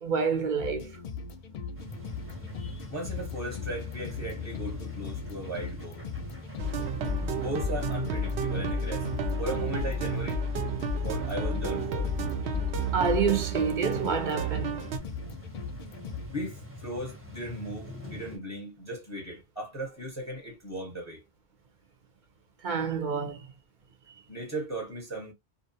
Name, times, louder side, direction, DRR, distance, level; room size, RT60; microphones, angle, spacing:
voice 1, 0.0-1.0 12.9-14.8 22.6-23.5, right 6 dB, 55° right, 0.7 m, -28 dB
sound 1, 0.6-16.3, left 6 dB, 55° left, 0.6 m, -39 dB
sound 2, 1.7-18.4, left 1 dB, 15° right, 0.8 m, -44 dB
voice 2, 2.5-6.0 7.3-10.4 11.0-12.1 16.3-21.3 24.3-25.3, right 1 dB, 15° left, 0.8 m, -37 dB
sound 3, 6.6-15.0, right 2 dB, 80° right, 0.9 m, -31 dB
2.5 x 2.1 x 2.7 m
omnidirectional pair, 1.1 m